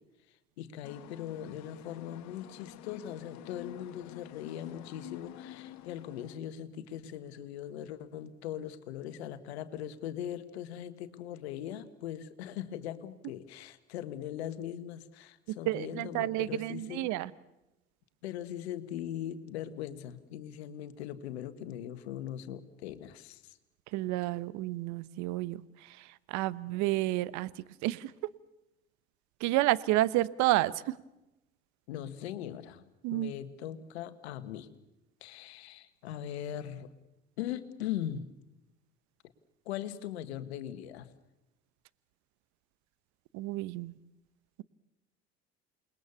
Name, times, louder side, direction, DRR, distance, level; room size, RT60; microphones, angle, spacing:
voice 1, 0.3-17.1 18.2-23.6 31.9-32.8 33.1-34.7 35.2-36.9 37.4-38.3 39.6-41.1, left 11 dB, 80° left, 12 dB, 1.6 m, -40 dB
sound 1, 0.8-6.4, left 12 dB, 60° left, 1.7 m, -49 dB
voice 2, 15.5-17.3 23.9-25.6 26.0-27.5 27.8-28.1 29.4-31.0 33.0-33.3 43.3-43.9, right 17 dB, 60° right, 19 dB, 1.0 m, -30 dB
28.5 x 21.0 x 7.0 m, 0.94 s
hypercardioid pair, 65°, 32 cm